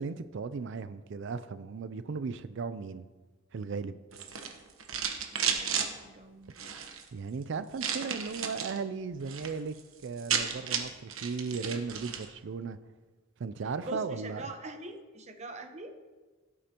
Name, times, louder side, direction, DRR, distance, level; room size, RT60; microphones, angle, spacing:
voice 1, 0.0-3.0 3.5-3.9 7.1-9.7 10.0-12.8 13.4-14.5, right 5 dB, 60° right, 13 dB, 0.4 m, -36 dB
sound 1, 4.1-5.9 6.5-7.0 7.8-8.8 9.1-9.5 9.8-9.9 10.1-12.3, right 7 dB, 85° right, 1.1 m, -33 dB
voice 2, 5.3-6.5 13.8-15.9, right 1 dB, 35° right, 6 dB, 0.9 m, -43 dB
16.0 x 8.6 x 2.9 m, 1.3 s
head